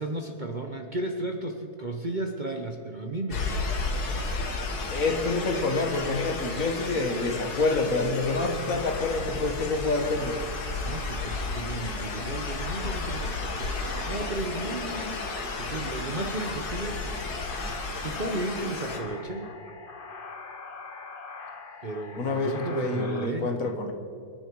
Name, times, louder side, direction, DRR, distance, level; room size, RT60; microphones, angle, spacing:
voice 1, 0.0-4.0 10.8-15.3 15.5-17.2 17.4-19.5 21.8-23.5, right 2 dB, 35° right, 3 dB, 1.0 m, -34 dB
sound 1, 3.3-19.0, left 3 dB, 70° left, 2.1 m, -33 dB
voice 2, 4.9-10.4 22.2-23.9, left 3 dB, 55° left, 3 dB, 1.9 m, -27 dB
sound 2, 8.3-23.3, left 4 dB, 35° left, 1.2 m, -42 dB
24.5 x 10.5 x 4.7 m, 2.4 s
omnidirectional pair, 1.7 m